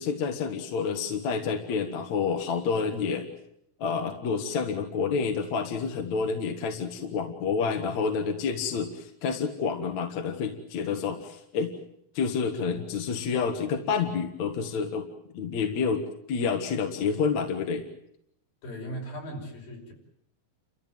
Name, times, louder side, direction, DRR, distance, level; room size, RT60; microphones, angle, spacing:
voice 1, 0.0-3.3 3.8-11.7 12.1-15.1 15.3-17.8, left 5 dB, 55° left, 4 dB, 2.7 m, -29 dB
voice 2, 18.6-19.9, equal, 75° left, 0 dB, 7.2 m, -38 dB
29.5 x 14.5 x 9.3 m, 0.73 s
omnidirectional pair, 4.1 m